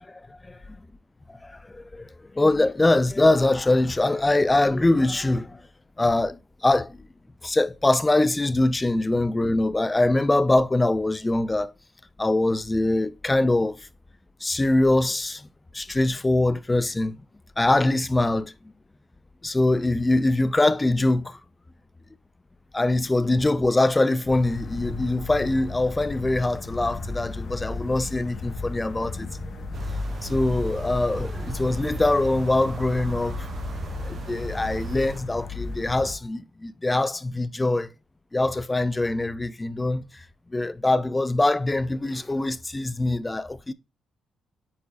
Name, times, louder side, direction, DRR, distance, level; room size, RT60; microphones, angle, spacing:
voice 1, 1.4-2.1 2.3-5.6 6.0-7.0 7.4-11.7 12.2-13.8 14.4-15.5 15.7-17.2 17.6-18.5 19.4-21.4 22.7-29.3 30.2-33.4 34.0-37.9 38.3-40.1 40.5-43.7, left 2 dB, 15° left, 0.4 m, -23 dB
sound 1, 24.2-36.1, left 3 dB, 55° left, 1.8 m, -34 dB
sound 2, 29.7-35.2, right 6 dB, 50° right, 0.8 m, -38 dB
8.3 x 4.6 x 2.5 m
cardioid pair, 90°, 0 cm